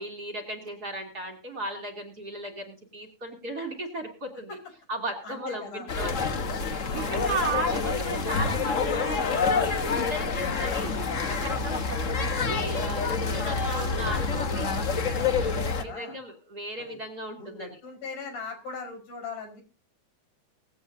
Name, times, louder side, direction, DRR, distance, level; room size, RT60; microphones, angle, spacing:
voice 1, 0.0-4.6 4.9-6.3 6.6-10.9 11.2-14.7 15.3-17.7, right 2 dB, 30° right, 3 dB, 3.0 m, -36 dB
voice 2, 5.2-5.9 6.9-7.6 10.1-11.0 13.2-14.8 15.4-16.2 16.8-17.0 17.4-19.6, left 4 dB, 85° left, 3 dB, 6.5 m, -40 dB
sound 1, 5.9-15.8, left 4 dB, 70° left, 0.7 m, -27 dB
19.0 x 16.5 x 2.7 m, 0.32 s
omnidirectional pair, 3.5 m